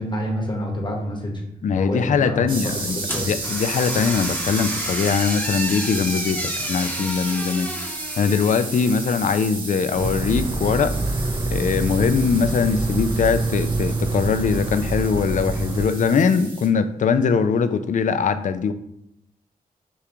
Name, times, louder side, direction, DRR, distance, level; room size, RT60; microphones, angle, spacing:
voice 1, 0.0-1.4 1.7-3.3, equal, 30° left, 0 dB, 1.2 m, -28 dB
voice 2, 1.6-18.7, left 6 dB, 55° left, 11 dB, 0.4 m, -22 dB
sound 1, 2.5-16.7, right 3 dB, 70° right, 1.6 m, -32 dB
sound 2, 3.0-9.2, equal, 10° left, 0.9 m, -32 dB
sound 3, 10.0-15.9, right 2 dB, 20° right, 0.4 m, -26 dB
6.7 x 2.4 x 3.0 m, 0.78 s
cardioid pair, 75°, 16 cm